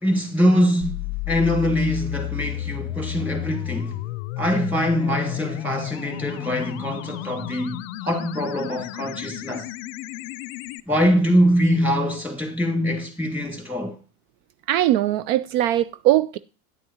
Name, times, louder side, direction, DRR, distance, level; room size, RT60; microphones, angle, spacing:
voice 1, 0.0-4.0 4.4-9.7 10.9-14.0, equal, 5° right, 2.1 m, -23 dB
sound 1, 0.8-10.8, left 17 dB, 70° left, 0.5 m, -32 dB
voice 2, 14.7-16.4, right 14 dB, 70° right, 0.5 m, -20 dB
9.6 x 7.8 x 2.8 m
supercardioid pair, 100°, 42 cm